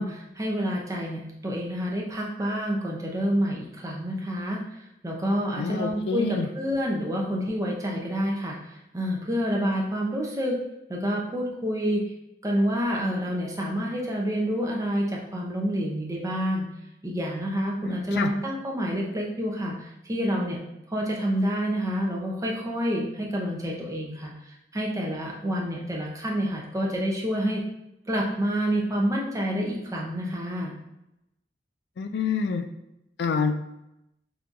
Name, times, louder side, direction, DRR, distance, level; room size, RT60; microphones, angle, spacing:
voice 1, 0.0-4.6 5.0-10.6 10.9-12.0 12.4-16.7 17.0-20.6 20.9-24.3 24.7-27.6 28.1-30.8, equal, 20° right, -2 dB, 0.6 m, -28 dB
voice 2, 5.6-6.5 17.8-18.3 32.0-32.6 33.2-33.6, left 5 dB, 65° left, 7 dB, 0.3 m, -27 dB
3.7 x 2.8 x 2.5 m, 0.86 s
head